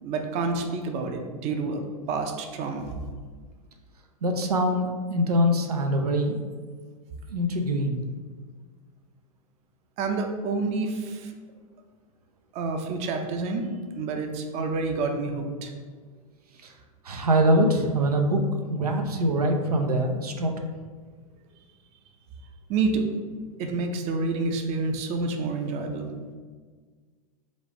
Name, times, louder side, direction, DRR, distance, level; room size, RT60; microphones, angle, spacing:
voice 1, 0.0-1.8 2.1-2.9 10.0-11.3 12.5-13.7 14.0-15.7 22.7-23.2 23.6-26.1, right 3 dB, 35° right, 4 dB, 0.6 m, -28 dB
voice 2, 4.2-6.4 7.3-8.0 16.6-16.7 17.0-18.4 18.7-20.5, equal, 85° right, 3 dB, 0.6 m, -23 dB
4.1 x 2.4 x 4.7 m, 1.5 s
hypercardioid pair, 105°, 19 cm